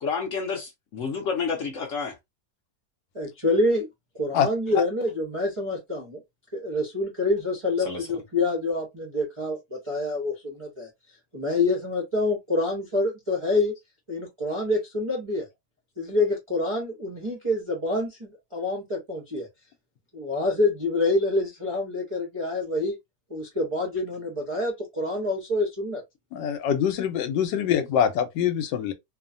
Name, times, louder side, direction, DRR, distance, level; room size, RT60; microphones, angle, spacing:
voice 1, 0.0-2.1 7.8-8.1, left 5 dB, 65° left, 0.8 m, -30 dB
voice 2, 3.1-3.9 4.2-6.2 6.5-10.9 11.3-13.7 14.1-15.5 16.0-19.5 20.1-23.0 23.3-26.0, left 2 dB, 40° right, 0.4 m, -26 dB
voice 3, 26.3-28.9, left 9 dB, 80° left, 1.3 m, -24 dB
3.0 x 2.1 x 2.5 m
omnidirectional pair, 2.0 m